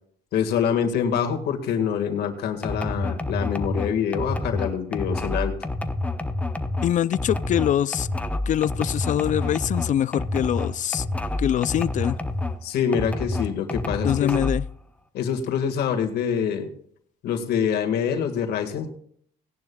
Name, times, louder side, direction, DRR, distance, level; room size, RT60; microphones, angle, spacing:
voice 1, 0.3-5.5 12.6-14.4 15.1-16.7 17.2-18.9, left 7 dB, 70° left, 4 dB, 1.8 m, -25 dB
sound 1, 2.6-12.6 12.9-14.7, left 2 dB, 10° left, 0.9 m, -28 dB
voice 2, 6.8-8.1 8.5-11.1 11.4-12.2 14.0-14.6, left 11 dB, 50° left, 17 dB, 0.4 m, -24 dB
18.5 x 10.5 x 2.3 m, 0.63 s
cardioid pair, 110°, 17 cm